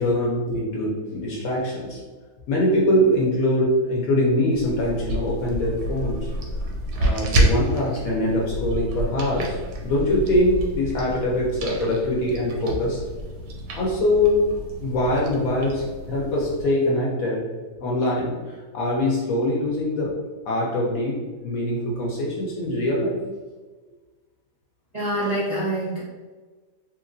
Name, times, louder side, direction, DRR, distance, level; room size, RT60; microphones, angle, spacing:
voice 1, 0.0-2.0 2.5-6.3 6.9-13.0 13.7-14.5 14.8-17.4 17.8-20.2 20.5-23.2, left 1 dB, 65° left, -4 dB, 1.0 m, -23 dB
sound 1, 4.5-16.7, right 1 dB, 80° right, 1.2 m, -29 dB
voice 2, 24.9-26.0, right 1 dB, 30° right, -10 dB, 0.9 m, -25 dB
2.9 x 2.8 x 2.5 m, 1.4 s
omnidirectional pair, 1.7 m